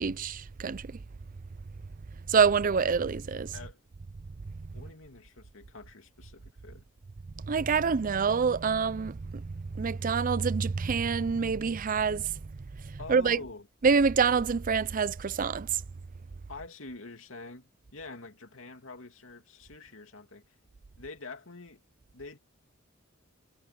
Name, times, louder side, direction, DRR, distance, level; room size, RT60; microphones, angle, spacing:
voice 1, 0.0-0.9 2.3-3.5 7.5-9.5 9.7-12.3 12.8-13.4 13.8-15.8, right 5 dB, 40° right, 0.5 m, -26 dB
voice 2, 4.7-6.8 13.0-13.7 16.5-20.4 21.0-21.8 22.1-22.4, left 3 dB, 70° left, 2.9 m, -46 dB
head